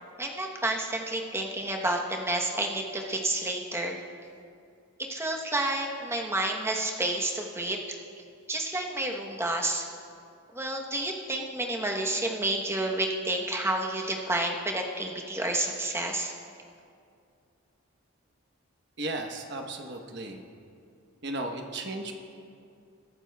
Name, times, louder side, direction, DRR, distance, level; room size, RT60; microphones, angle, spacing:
voice 1, 0.2-4.0 5.0-8.0 8.5-9.9 10.5-16.3, right 2 dB, 10° right, 1 dB, 0.9 m, -30 dB
voice 2, 19.0-20.4 21.2-22.2, right 2 dB, 50° right, 4 dB, 1.0 m, -35 dB
22.0 x 11.5 x 2.3 m, 2.4 s
head